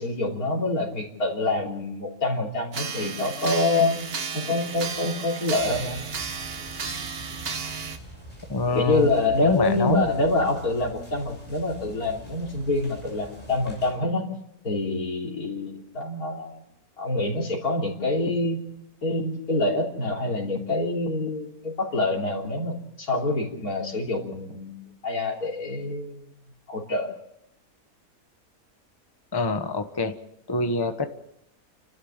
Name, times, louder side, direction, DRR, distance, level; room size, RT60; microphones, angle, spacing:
voice 1, 0.0-4.0 4.3-6.0 8.7-14.3 14.6-16.6 17.0-18.7 19.0-26.3 26.7-27.1, left 2 dB, 75° left, -1 dB, 3.7 m, -26 dB
sound 1, 2.7-8.0, right 5 dB, 45° right, 1.3 m, -33 dB
sound 2, 5.6-13.9, equal, 20° right, 7.9 m, -44 dB
voice 2, 8.5-9.1 9.4-10.1 29.3-30.1 30.5-31.1, left 3 dB, 20° left, 8 dB, 1.0 m, -25 dB
29.5 x 13.0 x 7.3 m, 0.81 s
omnidirectional pair, 1.6 m